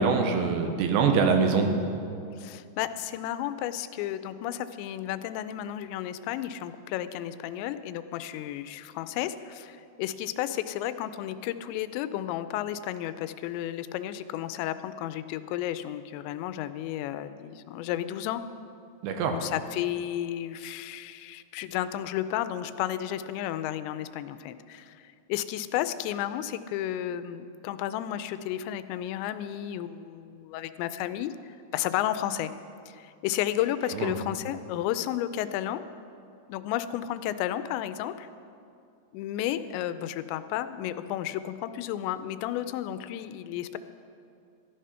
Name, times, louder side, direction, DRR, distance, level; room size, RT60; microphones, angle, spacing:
voice 1, 0.0-1.8 19.0-19.4 34.0-34.1, right 5 dB, 85° right, 5 dB, 3.2 m, -24 dB
voice 2, 2.4-18.5 19.3-25.0 25.3-32.5 32.9-35.8 36.5-38.3 39.1-43.8, left 12 dB, 90° left, 12 dB, 2.8 m, -32 dB
14.0 x 11.0 x 5.6 m, 2.5 s
omnidirectional pair, 5.0 m